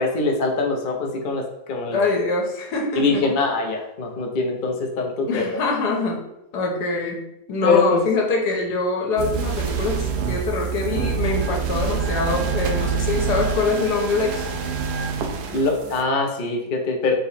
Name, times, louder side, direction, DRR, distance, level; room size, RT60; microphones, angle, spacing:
voice 1, 0.0-2.0 3.0-5.4 7.6-8.0 15.5-17.1, left 3 dB, 55° left, 1 dB, 0.6 m, -23 dB
voice 2, 1.9-3.3 5.3-6.2 6.5-14.5, left 3 dB, 80° left, 0 dB, 1.5 m, -24 dB
sound 1, 9.2-16.0, right 6 dB, 75° right, 1.1 m, -26 dB
3.9 x 2.9 x 4.1 m, 0.87 s
omnidirectional pair, 1.7 m